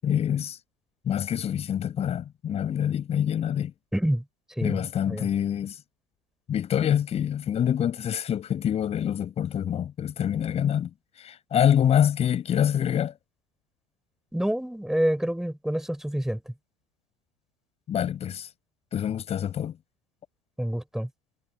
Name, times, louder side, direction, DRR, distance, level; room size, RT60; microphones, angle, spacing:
voice 1, 0.0-0.6 1.0-3.7 4.6-5.8 6.5-13.1 17.9-18.5 18.9-19.8, left 9 dB, 35° left, 7.4 m, -26 dB
voice 2, 3.9-4.2 4.6-4.8 5.1-5.3 14.3-16.4 20.6-21.1, equal, ahead, 7.4 m, -27 dB
figure-of-eight pair, 70°, 18 cm